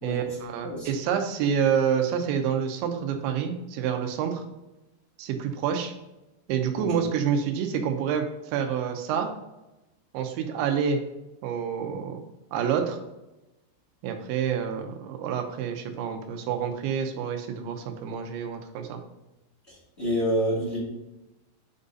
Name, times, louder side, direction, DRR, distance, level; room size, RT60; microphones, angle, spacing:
voice 1, 0.0-4.4 5.2-5.9 6.5-9.3 10.1-11.0 11.4-12.2 12.5-13.0 14.0-19.0, right 7 dB, 85° right, 5 dB, 3.2 m, -28 dB
voice 2, 19.7-20.8, equal, 25° left, -6 dB, 1.4 m, -27 dB
8.5 x 4.0 x 3.8 m, 0.98 s
omnidirectional pair, 5.1 m